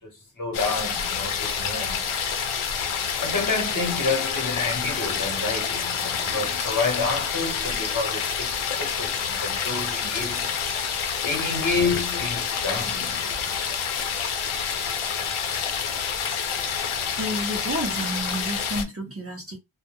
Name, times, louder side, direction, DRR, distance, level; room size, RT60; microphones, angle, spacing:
voice 1, 0.4-2.0 3.2-10.5 11.2-13.6, left 3 dB, 40° left, 0.9 m, -29 dB
sound 1, 0.5-18.8, left 7 dB, 85° left, 0.7 m, -28 dB
voice 2, 17.2-19.6, right 1 dB, 30° right, 0.6 m, -30 dB
2.2 x 2.1 x 2.9 m
wide cardioid pair, 160°, 49 cm